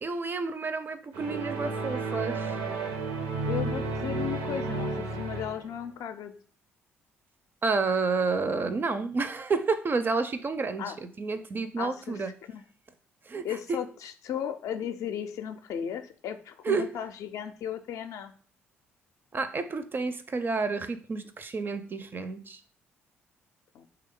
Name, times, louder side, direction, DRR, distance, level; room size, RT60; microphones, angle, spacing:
voice 1, 0.0-2.5 7.6-12.3 13.3-13.8 16.6-16.9 19.3-22.6, right 4 dB, 35° right, 11 dB, 0.4 m, -30 dB
sound 1, 1.1-5.8, right 3 dB, 80° right, 0.7 m, -32 dB
voice 2, 3.5-6.3 10.8-11.0 11.8-12.2 12.5-12.6 13.4-18.3 23.7-23.9, left 9 dB, 60° left, 8 dB, 0.4 m, -35 dB
3.2 x 2.3 x 3.6 m, 0.43 s
hypercardioid pair, 50°, 6 cm